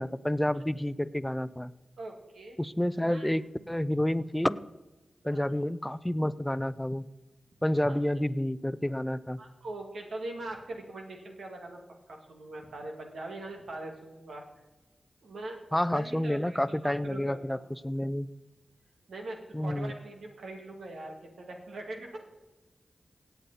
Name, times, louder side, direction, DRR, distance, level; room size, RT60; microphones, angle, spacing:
voice 1, 0.0-1.7 2.6-4.6 5.2-7.0 7.6-9.4 15.7-18.3 19.5-19.9, left 1 dB, 10° left, 15 dB, 0.6 m, -29 dB
voice 2, 2.0-2.6 3.0-3.3 5.2-5.4 7.9-8.0 9.4-11.8 12.1-14.4 15.2-15.6 15.9-17.6 19.1-22.2, right 2 dB, 85° right, 2 dB, 2.1 m, -41 dB
17.5 x 8.1 x 4.2 m, 1.1 s
cardioid pair, 45°, 0 cm